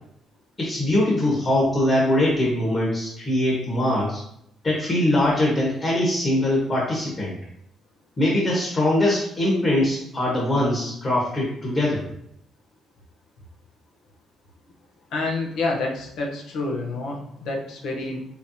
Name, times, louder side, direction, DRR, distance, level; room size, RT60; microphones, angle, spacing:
voice 1, 0.6-4.2 4.6-7.3 8.2-12.0, left 1 dB, 40° left, -4 dB, 1.4 m, -22 dB
voice 2, 15.1-18.3, left 2 dB, 75° left, 1 dB, 0.8 m, -28 dB
4.5 x 3.4 x 2.8 m, 0.73 s
cardioid pair, 90°, 0 cm